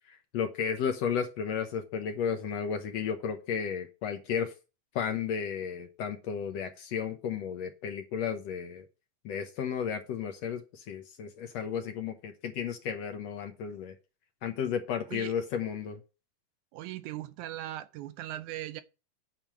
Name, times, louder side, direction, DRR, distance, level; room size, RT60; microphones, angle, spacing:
voice 1, 0.1-4.5 4.9-8.8 9.2-13.9 14.4-16.0, left 7 dB, 70° left, 1.8 m, -33 dB
voice 2, 16.7-18.8, right 14 dB, 80° right, 1.9 m, -39 dB
9.3 x 4.9 x 5.9 m
omnidirectional pair, 3.6 m